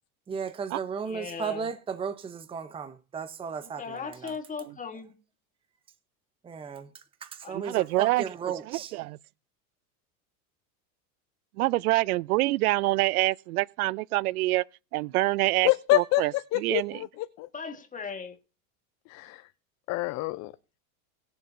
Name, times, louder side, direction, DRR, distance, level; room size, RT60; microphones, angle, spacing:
voice 1, 0.3-4.3 6.4-6.9 7.2-8.9, right 6 dB, 15° right, 0.7 m, -35 dB
voice 2, 1.0-1.7 3.6-5.1 7.4-8.1 17.5-18.4, left 5 dB, 20° left, 1.4 m, -39 dB
voice 3, 7.5-8.2 8.7-9.2 11.6-14.6 14.9-17.0, right 19 dB, 90° right, 0.5 m, -26 dB
voice 4, 15.6-17.5 19.1-19.4 19.9-20.5, left 18 dB, 40° left, 0.5 m, -27 dB
19.5 x 7.0 x 2.6 m
supercardioid pair, 115°, 42 cm